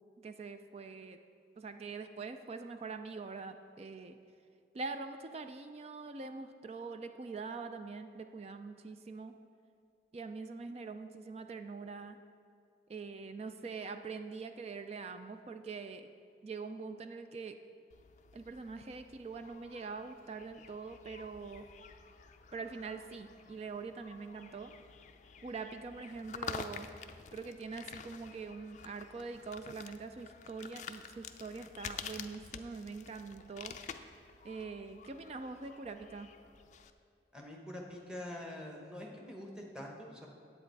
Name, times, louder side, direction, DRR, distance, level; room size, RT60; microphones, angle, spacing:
voice 1, 0.2-1.2 1.6-4.2 4.7-9.3 10.1-12.2 12.9-16.1 16.4-17.6 18.3-21.7 22.5-24.7 25.4-26.9 27.3-33.8 34.4-36.3, right 4 dB, 35° right, 8 dB, 0.3 m, -44 dB
sound 1, 17.9-36.9, left 6 dB, 40° left, 0.4 m, -49 dB
voice 2, 37.3-40.3, left 1 dB, 5° right, -1 dB, 1.1 m, -45 dB
9.8 x 8.1 x 4.6 m, 2.4 s
head